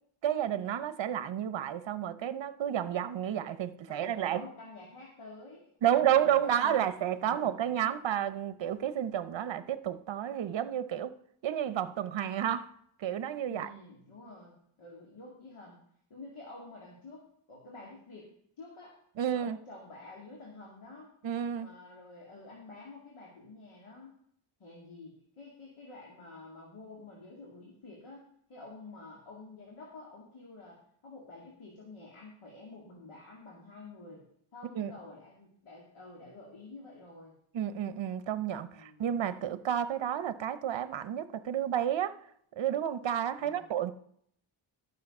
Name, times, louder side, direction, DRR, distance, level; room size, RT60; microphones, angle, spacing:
voice 1, 0.2-4.4 5.8-11.1 11.4-12.7 13.0-13.7 19.2-19.6 21.2-21.7 34.8-34.9 37.5-42.1 42.6-43.9, right 10 dB, 65° right, 0.7 m, -31 dB
voice 2, 3.5-7.6 13.5-15.8 16.1-17.2 17.5-18.3 18.6-19.0 19.3-21.1 21.6-24.2 24.6-28.2 28.5-34.2 34.5-37.3 38.6-39.1 43.4-43.7, left 3 dB, 80° left, 2.4 m, -49 dB
12.5 x 6.4 x 5.4 m
wide cardioid pair, 120°, 49 cm